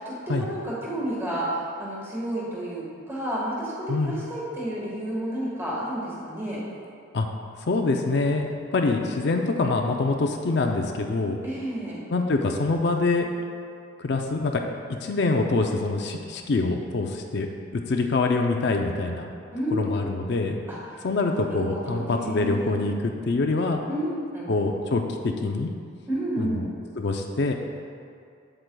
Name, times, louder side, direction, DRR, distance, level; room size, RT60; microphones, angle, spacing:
voice 1, 0.0-6.6 11.4-12.0 19.5-19.8 20.7-21.1 21.3-22.8 23.9-24.4 26.1-26.7, right 1 dB, 10° right, -6 dB, 1.5 m, -31 dB
voice 2, 3.9-4.2 7.1-7.3 7.7-11.4 12.1-13.3 14.0-14.6 15.0-19.3 19.7-20.6 21.0-23.8 24.5-25.7 26.4-26.7 27.0-27.5, left 3 dB, 55° left, 3 dB, 0.4 m, -25 dB
8.7 x 7.7 x 2.2 m, 2.4 s
head